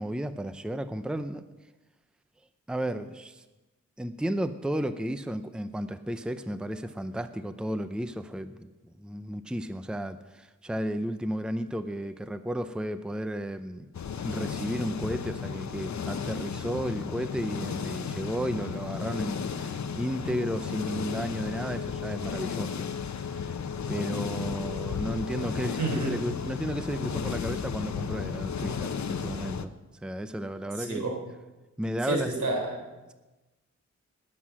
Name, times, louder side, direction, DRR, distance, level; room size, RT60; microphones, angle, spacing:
voice 1, 0.0-1.4 2.7-3.4 4.0-13.9 14.2-22.7 23.2-23.6 23.9-29.7 30.0-31.1 31.8-32.3, equal, 5° right, 10 dB, 0.6 m, -33 dB
sound 1, 13.9-29.7, left 6 dB, 70° left, 0.8 m, -34 dB
voice 2, 25.8-26.1 30.8-31.2 32.0-32.8, right 2 dB, 80° right, 1 dB, 3.8 m, -29 dB
20.0 x 7.7 x 6.2 m, 1.1 s
wide cardioid pair, 100°, 30 cm